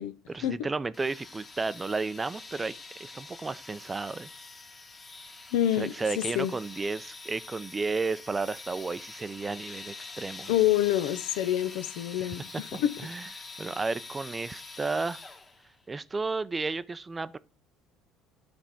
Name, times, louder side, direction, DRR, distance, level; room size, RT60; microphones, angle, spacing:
voice 1, 0.3-2.7 3.0-4.3 5.8-10.5 12.2-12.3 13.0-15.2 15.9-17.4, right 3 dB, 20° right, 0.5 m, -33 dB
sound 1, 0.9-15.7, left 3 dB, 25° left, 1.4 m, -45 dB
voice 2, 5.5-6.5 10.5-12.9, left 12 dB, 80° left, 0.6 m, -27 dB
10.0 x 3.5 x 5.7 m
supercardioid pair, 80°, 0 cm